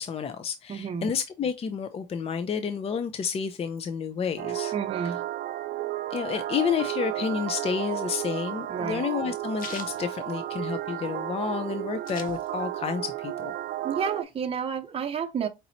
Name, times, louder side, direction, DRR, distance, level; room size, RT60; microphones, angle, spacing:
voice 1, 0.0-4.7 5.0-5.1 6.1-13.5, left 7 dB, 35° left, 0.5 m, -30 dB
voice 2, 0.7-1.1 4.7-5.2 8.7-9.0 13.8-15.5, right 6 dB, 35° right, 0.7 m, -30 dB
sound 1, 4.4-14.2, right 13 dB, 75° right, 0.5 m, -33 dB
sound 2, 7.9-11.0 11.3-11.4 11.6-12.9 13.3-14.4, left 7 dB, 55° left, 0.8 m, -44 dB
5.2 x 2.9 x 2.6 m
cardioid pair, 110°, 17 cm